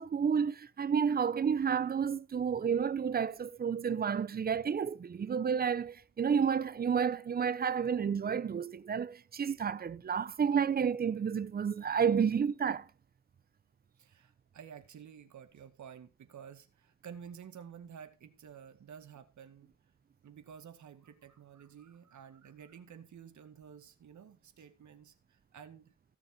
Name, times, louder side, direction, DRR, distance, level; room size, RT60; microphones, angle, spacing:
voice 1, 0.0-12.9, right 7 dB, 30° right, 0.6 m, -30 dB
voice 2, 14.0-19.7 20.2-25.9, right 7 dB, 75° right, 2.1 m, -51 dB
15.5 x 7.8 x 5.2 m
wide cardioid pair, 180°, 29 cm